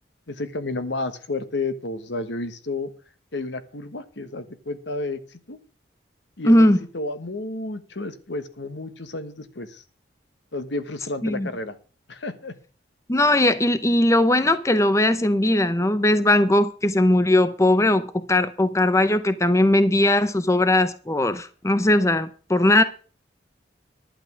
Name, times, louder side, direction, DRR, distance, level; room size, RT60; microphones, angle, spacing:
voice 1, 0.3-2.9 3.3-5.6 6.4-6.7 6.9-9.8 10.5-11.8 12.1-12.6, left 2 dB, 75° left, 1.3 m, -31 dB
voice 2, 6.5-6.8 11.2-11.5 13.1-22.8, left 1 dB, 15° left, 0.6 m, -19 dB
11.5 x 8.7 x 6.0 m
head